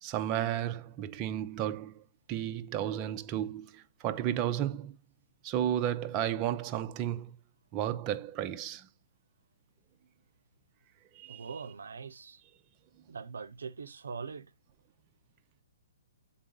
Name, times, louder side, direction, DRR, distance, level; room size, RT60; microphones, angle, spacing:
voice 1, 0.0-2.0 2.3-5.0 5.4-7.4 7.7-8.9 11.2-11.4, right 11 dB, 30° right, 0.6 m, -33 dB
voice 2, 11.3-12.4 13.1-14.5, right 5 dB, 75° right, 0.6 m, -42 dB
7.7 x 4.0 x 3.8 m
hypercardioid pair, 135°, 0 cm